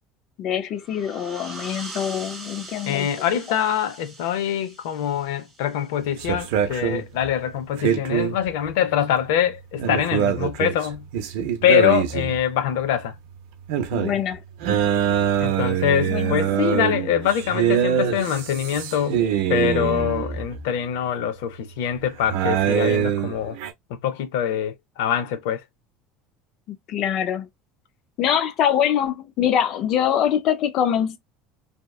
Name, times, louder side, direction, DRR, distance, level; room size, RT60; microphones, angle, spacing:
voice 1, 0.4-3.1 3.5-3.6 13.9-14.4 16.1-16.7 26.7-27.5 28.2-31.2, left 9 dB, 40° left, 0.4 m, -24 dB
sound 1, 0.8-6.1, right 3 dB, 10° right, 0.6 m, -41 dB
voice 2, 2.8-11.1 11.6-13.2 15.4-19.2 19.5-23.6 23.9-25.6, left 9 dB, 85° left, 0.6 m, -24 dB
sound 2, 6.0-20.7 21.6-23.7, right 9 dB, 65° right, 0.5 m, -24 dB
2.8 x 2.1 x 2.3 m
cardioid pair, 175°, 0 cm